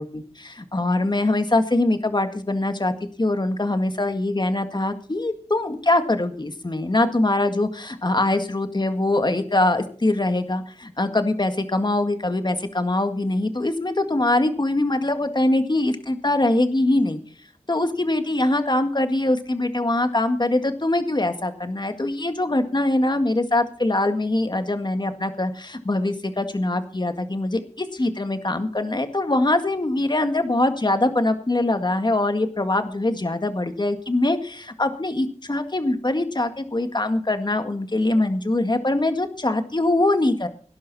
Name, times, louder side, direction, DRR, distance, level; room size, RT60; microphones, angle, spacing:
voice 1, 0.0-2.9 3.2-17.2 17.7-40.5, left 2 dB, 40° left, 7 dB, 1.9 m, -23 dB
18.0 x 11.0 x 4.2 m, 0.43 s
wide cardioid pair, 65°, 12 cm